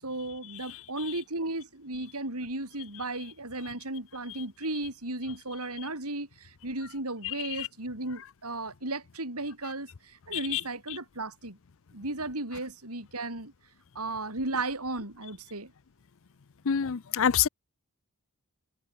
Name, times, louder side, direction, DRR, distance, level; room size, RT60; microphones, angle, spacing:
voice 1, 0.0-11.6 11.9-13.5 13.9-15.7, right 2 dB, 85° right, 6.6 m, -35 dB
voice 2, 7.2-7.7 10.3-10.6 16.6-17.5, left 8 dB, 65° left, 0.6 m, -27 dB
head